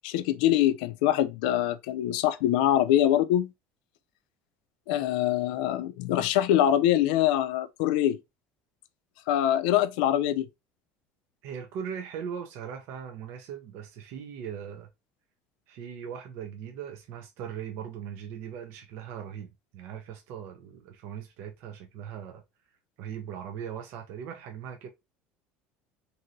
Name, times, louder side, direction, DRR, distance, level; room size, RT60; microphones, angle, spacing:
voice 1, 0.0-3.5 4.9-8.2 9.3-10.5, left 12 dB, 90° left, 0.4 m, -24 dB
voice 2, 11.4-14.9 15.7-22.4 23.0-24.9, right 8 dB, 65° right, 0.5 m, -39 dB
3.0 x 2.6 x 2.6 m
cardioid pair, 140°, 5 cm